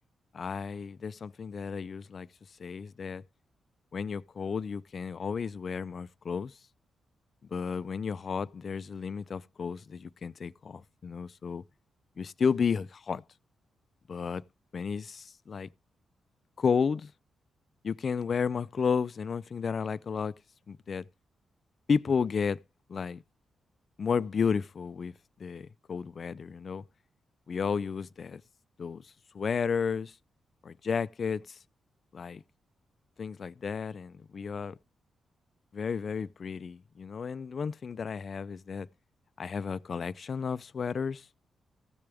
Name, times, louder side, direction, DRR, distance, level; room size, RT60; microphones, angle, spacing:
voice 1, 0.3-2.3 2.6-3.2 3.9-6.5 7.5-11.6 12.2-13.2 14.1-14.4 14.7-15.7 16.6-17.1 17.8-20.3 20.7-21.1 21.9-22.6 22.9-23.2 24.0-25.1 25.4-26.8 27.5-28.4 28.8-29.1 29.3-30.1 30.6-31.6 32.1-32.4 33.2-34.8 35.7-38.9 39.4-41.3, left 6 dB, 40° left, 0.5 m, -32 dB
15.0 x 6.8 x 3.5 m
wide cardioid pair, 145°, 0 cm